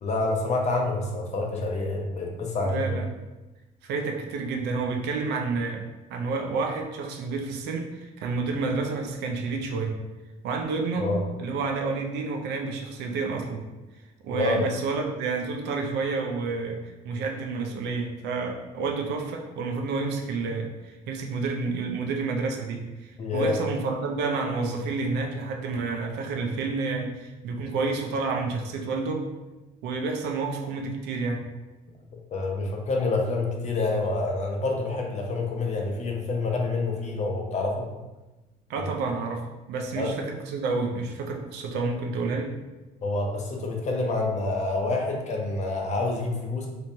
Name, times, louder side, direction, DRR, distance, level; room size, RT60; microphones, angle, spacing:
voice 1, 0.0-3.0 11.0-11.3 14.3-14.6 23.2-23.5 32.3-37.9 38.8-38.9 40.0-40.1 43.0-46.7, left 3 dB, 45° left, 1 dB, 0.7 m, -27 dB
voice 2, 2.6-3.0 3.8-5.8 6.1-10.0 10.4-11.1 11.4-13.6 14.2-16.8 17.0-29.3 29.8-31.4 38.7-39.4 39.7-42.5, right 4 dB, 80° right, 3 dB, 0.6 m, -29 dB
3.3 x 3.0 x 2.7 m, 1.1 s
cardioid pair, 110°, 17 cm